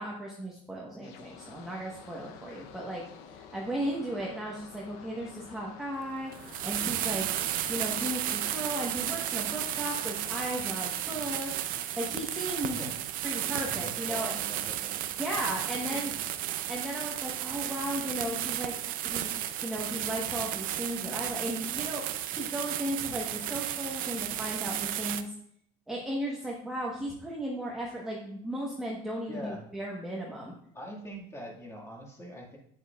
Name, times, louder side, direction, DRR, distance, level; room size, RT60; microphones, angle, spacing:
voice 1, 0.0-3.0 3.4-7.3 7.7-12.8 13.2-14.3 15.2-16.1 16.7-19.3 19.6-25.3 25.9-30.5, right 1 dB, 5° right, -4 dB, 1.3 m, -35 dB
sound 1, 1.0-12.8, left 7 dB, 70° left, 0.8 m, -51 dB
sound 2, 6.3-25.2, right 12 dB, 55° right, 0.6 m, -33 dB
voice 2, 12.6-13.0 13.7-15.0 15.5-16.2 23.3-23.5 29.3-29.6 30.7-32.6, equal, 15° left, -1 dB, 2.1 m, -44 dB
9.3 x 8.0 x 2.4 m, 0.68 s
cardioid pair, 130°, 17 cm